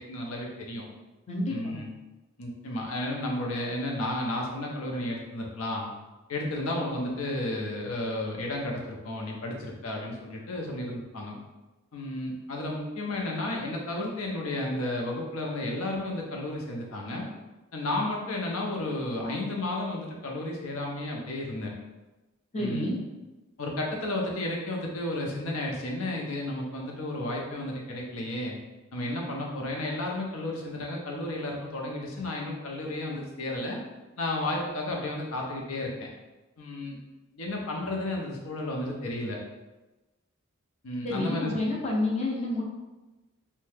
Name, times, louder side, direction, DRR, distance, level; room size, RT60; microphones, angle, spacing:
voice 1, 0.1-0.8 1.5-1.9 2.4-5.9 6.3-11.4 11.9-17.3 17.7-21.7 22.6-22.9 23.6-28.6 28.9-33.8 34.2-36.1 36.6-37.0 37.3-39.4 40.8-41.5, left 1 dB, 80° left, -1 dB, 0.6 m, -32 dB
voice 2, 1.3-1.8 22.5-23.0 41.0-42.6, left 2 dB, 30° left, -2 dB, 0.6 m, -29 dB
2.7 x 2.1 x 3.2 m, 1.1 s
head